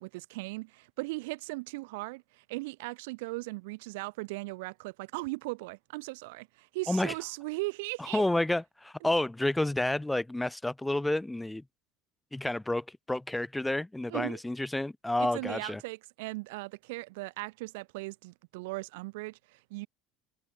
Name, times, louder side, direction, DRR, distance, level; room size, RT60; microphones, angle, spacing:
voice 1, 0.0-8.2 14.1-14.4 15.2-19.9, right 24 dB, 85° right, 0.5 m, -38 dB
voice 2, 8.1-11.6 12.3-15.8, left 1 dB, 10° left, 0.3 m, -30 dB
supercardioid pair, 100°, 0 cm